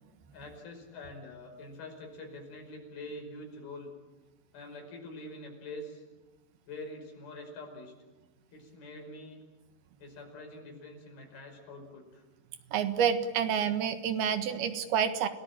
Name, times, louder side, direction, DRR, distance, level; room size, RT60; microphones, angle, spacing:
voice 1, 0.3-3.9 4.5-6.0 6.7-7.9 8.5-9.4 10.0-12.2, left 2 dB, 80° left, 3 dB, 7.1 m, -45 dB
voice 2, 12.7-15.3, right 8 dB, 85° right, 9 dB, 3.5 m, -28 dB
30.0 x 18.5 x 8.9 m, 1.1 s
omnidirectional pair, 4.3 m